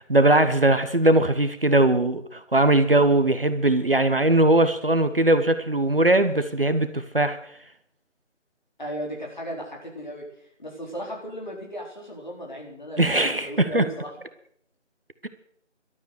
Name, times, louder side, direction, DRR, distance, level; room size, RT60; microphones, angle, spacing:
voice 1, 0.1-7.4 13.0-13.9 15.2-15.3, right 2 dB, 50° right, 10 dB, 1.1 m, -20 dB
voice 2, 8.8-10.2 10.6-14.1, equal, 40° left, -1 dB, 4.3 m, -36 dB
14.0 x 12.5 x 6.4 m, 0.67 s
figure-of-eight pair, 175°, 37 cm